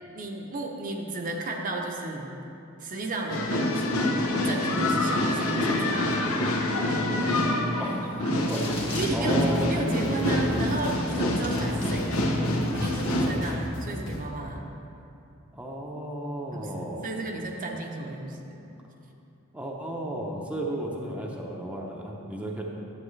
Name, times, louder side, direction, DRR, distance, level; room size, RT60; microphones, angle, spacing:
voice 1, 0.1-2.3 2.8-4.1 4.5-6.3 7.9-8.4 8.9-12.3 12.7-14.7 16.5-18.6, right 2 dB, 40° right, 1 dB, 0.7 m, -34 dB
sound 1, 3.3-13.3, left 1 dB, 90° left, 0.9 m, -26 dB
voice 2, 7.8-8.2 8.5-9.8 15.5-17.1 19.5-22.6, right 1 dB, 5° right, -2 dB, 0.7 m, -34 dB
sound 2, 8.2-9.3 10.1-10.2 10.7-12.0 12.3-13.1, left 3 dB, 25° left, 1.6 m, -41 dB
sound 3, 8.6-14.3, equal, 65° left, 1.3 m, -37 dB
11.0 x 7.5 x 3.2 m, 2.8 s
head